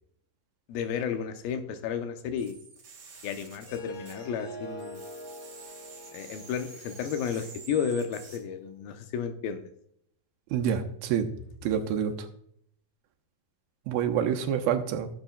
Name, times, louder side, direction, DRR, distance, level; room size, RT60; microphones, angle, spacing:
voice 1, 0.7-2.6 3.2-5.0 6.1-9.6, left 7 dB, 80° left, 7 dB, 2.7 m, -32 dB
sound 1, 2.4-4.5 4.8-8.4, right 5 dB, 50° right, 3.9 m, -48 dB
Harp, 3.6-8.8, right 1 dB, 45° left, 2.5 m, -45 dB
voice 2, 10.5-11.3 11.6-12.3 13.9-15.1, right 8 dB, 90° right, 5 dB, 2.7 m, -27 dB
15.5 x 7.3 x 2.3 m, 0.68 s
omnidirectional pair, 4.3 m